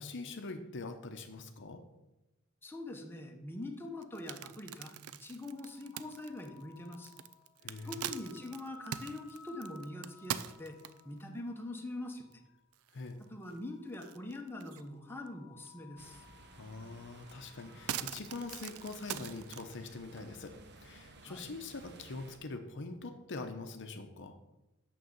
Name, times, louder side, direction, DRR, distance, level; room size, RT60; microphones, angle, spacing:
voice 1, 0.0-1.8 7.6-8.0 12.9-13.2 16.5-24.4, left 3 dB, 55° left, 7 dB, 0.8 m, -44 dB
voice 2, 2.6-7.1 7.8-10.8 11.0-12.4 13.3-16.2 21.2-21.5, left 1 dB, 10° left, 2 dB, 1.0 m, -43 dB
sound 1, 4.0-11.2 11.8-11.9 12.3-12.4 12.7-13.6 13.9-14.9 15.3-15.4 16.7-16.8 17.2-19.7, right 10 dB, 75° right, 0.5 m, -42 dB
sound 2, 5.6-12.6 13.1-14.5 14.7-18.2, left 4 dB, 25° left, 1.5 m, -59 dB
sound 3, 16.0-22.4, right 3 dB, 50° right, 0.9 m, -56 dB
6.5 x 6.3 x 7.1 m, 0.96 s
head